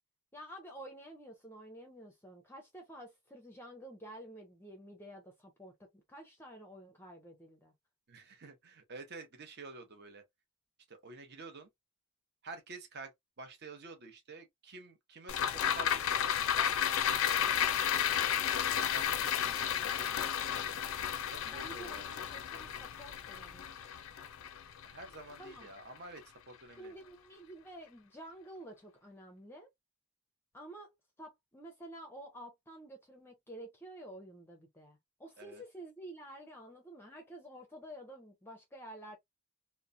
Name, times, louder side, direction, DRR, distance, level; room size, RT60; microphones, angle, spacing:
voice 1, 0.3-7.7 21.4-23.6 25.4-25.7 26.8-29.7 30.5-39.2, right 1 dB, 10° left, 0.5 m, -50 dB
voice 2, 8.1-10.2 10.9-11.7 12.4-17.8 18.6-20.6 21.3-22.2 24.8-26.9 35.4-35.6, right 3 dB, 45° right, 0.8 m, -50 dB
sound 1, 15.3-25.8 26.2-26.3, left 9 dB, 60° left, 0.4 m, -33 dB
3.0 x 2.1 x 2.5 m
head